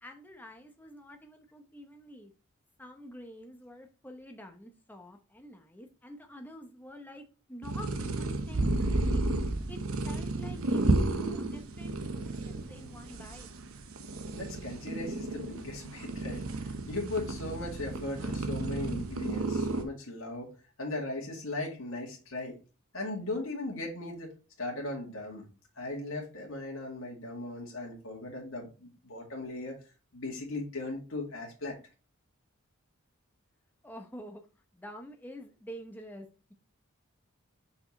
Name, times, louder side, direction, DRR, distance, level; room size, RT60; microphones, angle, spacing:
voice 1, 0.0-2.3 2.8-9.2 9.7-9.8 10.0-13.5 33.8-34.4 34.7-36.5, equal, 10° left, 0.9 m, -47 dB
sound 1, 7.6-19.8, right 2 dB, 75° right, 0.9 m, -32 dB
voice 2, 14.3-20.5 20.8-22.6 22.9-24.3 24.6-25.4 25.8-29.8 30.1-31.8, left 2 dB, 65° left, 2.0 m, -38 dB
5.7 x 4.3 x 4.2 m
head